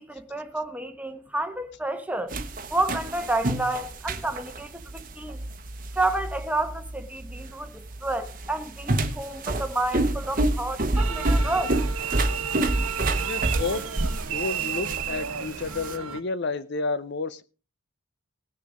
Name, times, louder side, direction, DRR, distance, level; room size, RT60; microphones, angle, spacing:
voice 1, 0.0-2.3 2.7-5.4 5.9-11.8, right 2 dB, 5° right, 1.1 m, -30 dB
sound 1, 2.3-16.0, right 2 dB, 40° right, 1.0 m, -29 dB
sound 2, 10.9-16.2, right 8 dB, 80° right, 1.2 m, -32 dB
voice 2, 13.2-13.8 14.3-17.4, left 3 dB, 50° left, 0.6 m, -31 dB
18.0 x 6.7 x 4.9 m
head